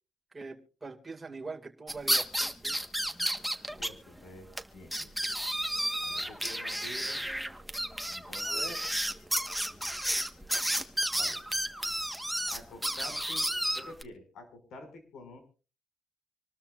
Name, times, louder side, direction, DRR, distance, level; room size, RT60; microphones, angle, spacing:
voice 1, 0.3-2.8 8.4-8.9, right 3 dB, 20° right, 2 dB, 2.2 m, -43 dB
sound 1, 1.9-3.9 4.2-4.3 4.6-4.7 4.9-14.0, equal, ahead, 1.3 m, -32 dB
voice 2, 3.8-4.5 4.7-5.4 6.0-7.2 8.1-8.8 11.1-11.4 12.5-13.5 13.7-15.4, left 2 dB, 75° left, 7 dB, 5.7 m, -48 dB
26.5 x 13.0 x 2.5 m, 0.35 s
cardioid pair, 90°, 0 cm